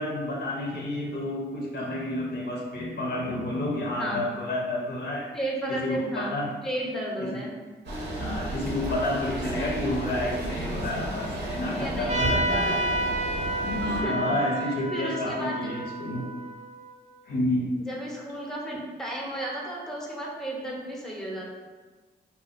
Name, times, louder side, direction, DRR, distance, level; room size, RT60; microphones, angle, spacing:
voice 1, 0.0-5.3 5.7-6.5 7.2-7.4 8.2-12.8 13.6-16.2 17.3-17.8, left 1 dB, 70° left, -2 dB, 0.5 m, -30 dB
voice 2, 5.3-6.4 6.6-7.5 11.8-12.8 14.0-14.2 14.9-15.5 17.8-21.5, right 1 dB, 5° left, -2 dB, 0.5 m, -33 dB
sound 1, 7.9-14.0, right 1 dB, 85° right, 0.6 m, -33 dB
Trumpet, 12.1-17.2, right 1 dB, 40° right, 0.5 m, -30 dB
2.5 x 2.2 x 2.4 m, 1.4 s
cardioid pair, 60°, 18 cm